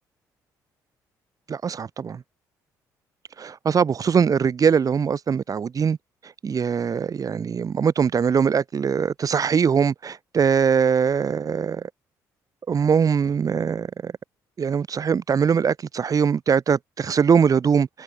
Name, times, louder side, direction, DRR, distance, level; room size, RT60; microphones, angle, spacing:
voice 1, 1.5-2.2 3.4-6.0 6.4-11.8 12.7-14.1 14.6-18.0, right 6 dB, 45° right, 7.1 m, -22 dB
supercardioid pair, 65°, 8 cm